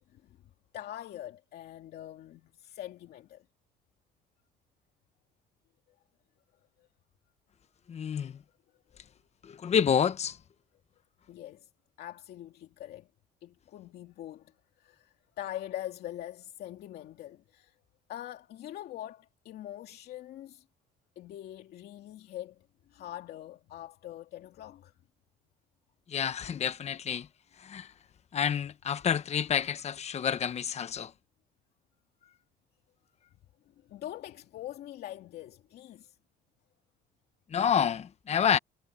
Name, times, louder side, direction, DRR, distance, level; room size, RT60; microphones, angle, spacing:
voice 1, 0.7-3.5 6.8-6.9 11.3-11.7 12.0-13.1 13.4-17.8 18.1-20.6 21.2-24.9 33.8-36.2, left 12 dB, 70° left, 2.5 m, -43 dB
voice 2, 7.9-8.4 9.4-10.4 26.1-27.3 27.6-27.9 28.3-31.1 37.5-38.6, left 8 dB, 40° left, 1.1 m, -28 dB
cardioid pair, 110°, 17 cm